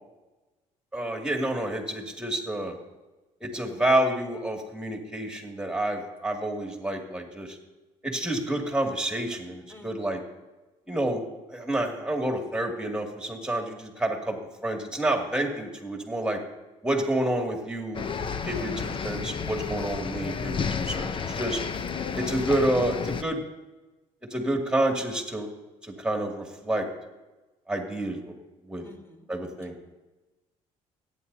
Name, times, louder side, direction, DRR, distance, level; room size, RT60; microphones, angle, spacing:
voice 1, 0.9-2.8 3.4-7.6 8.0-10.2 10.9-11.2 11.5-16.4 16.8-18.2 18.4-21.6 22.2-23.4 24.3-25.5 25.8-26.9 27.7-28.3 28.7-28.8 29.3-29.9, right 1 dB, 5° right, 1 dB, 2.4 m, -29 dB
voice 2, 9.7-10.1 18.5-18.9 22.0-22.4 28.8-29.3, left 2 dB, 15° left, 1 dB, 3.4 m, -51 dB
sound 1, 17.9-23.2, left 6 dB, 35° left, 0.7 m, -31 dB
24.0 x 9.9 x 2.8 m, 1.1 s
cardioid pair, 85°, 14 cm